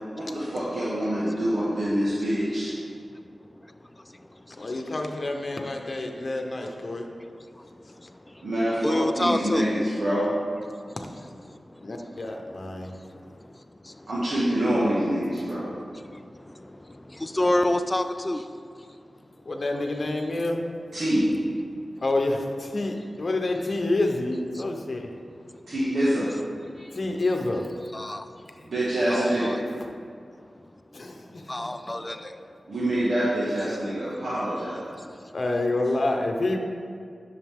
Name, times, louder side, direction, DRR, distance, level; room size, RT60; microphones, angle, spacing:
voice 1, 0.1-2.7 8.4-10.3 14.1-15.7 20.9-21.2 25.7-26.3 28.6-29.5 32.7-34.9, right 1 dB, 75° right, -9 dB, 1.7 m, -25 dB
voice 2, 4.6-7.1 11.8-12.9 19.5-20.6 22.0-25.1 26.9-27.7 29.8-29.9 30.9-31.7 32.2-32.3 35.3-36.6, left 2 dB, 50° left, 3 dB, 0.9 m, -28 dB
voice 3, 8.8-9.6 17.2-18.4 27.9-28.2 29.1-29.6 31.5-32.2, left 1 dB, 20° left, 9 dB, 0.3 m, -26 dB
10.5 x 6.7 x 3.6 m, 2.2 s
wide cardioid pair, 100°, 0 cm